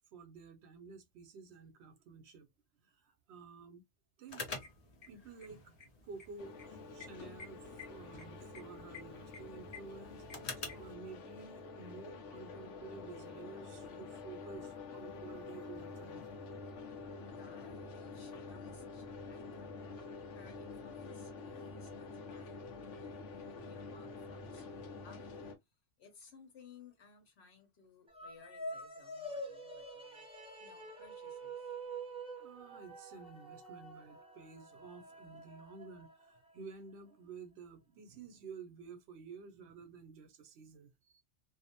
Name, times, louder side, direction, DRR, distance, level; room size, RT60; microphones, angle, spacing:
voice 1, 0.1-2.5 2.8-3.8 4.2-4.4 5.1-16.3 32.4-41.2, right 5 dB, 70° right, 0.8 m, -52 dB
sound 1, 4.3-10.9, left 3 dB, 40° left, 0.6 m, -48 dB
sound 2, 6.4-25.6, left 4 dB, 85° left, 1.0 m, -48 dB
voice 2, 17.2-19.8 20.3-25.5 26.0-30.3 30.6-31.7, left 5 dB, 65° left, 1.1 m, -60 dB
sound 3, 28.1-36.6, right 2 dB, 5° right, 0.5 m, -47 dB
2.5 x 2.0 x 2.6 m
omnidirectional pair, 1.2 m